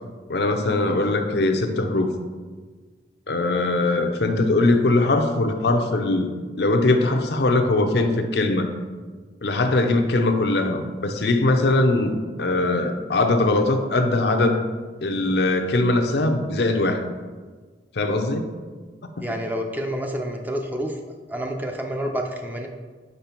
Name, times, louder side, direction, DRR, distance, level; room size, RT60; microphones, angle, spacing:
voice 1, 0.3-2.1 3.3-8.7 9.4-14.6 15.0-17.0 17.9-18.5, left 2 dB, 65° left, 6 dB, 0.6 m, -21 dB
voice 2, 19.2-21.0 21.3-22.7, equal, 10° right, 2 dB, 0.5 m, -28 dB
5.4 x 5.0 x 4.4 m, 1.4 s
head